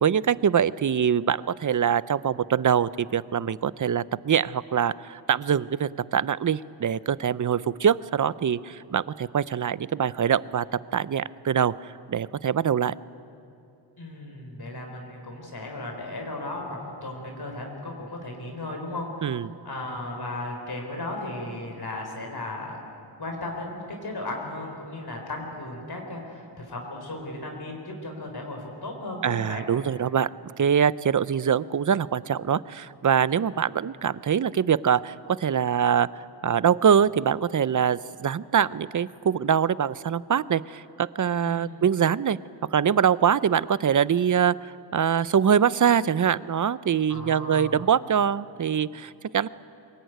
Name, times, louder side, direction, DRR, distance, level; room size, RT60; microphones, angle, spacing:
voice 1, 0.0-10.7 10.9-11.7 12.1-12.9 19.2-19.5 29.2-30.3 30.6-36.1 36.4-42.4 42.7-44.5 44.9-49.5, right 8 dB, 45° right, 18 dB, 0.5 m, -23 dB
voice 2, 14.0-19.4 19.6-22.8 23.2-29.7 41.4-41.9 47.1-47.8, left 2 dB, 60° left, 2 dB, 4.3 m, -35 dB
23.5 x 20.5 x 9.3 m, 2.7 s
wide cardioid pair, 110°, 43 cm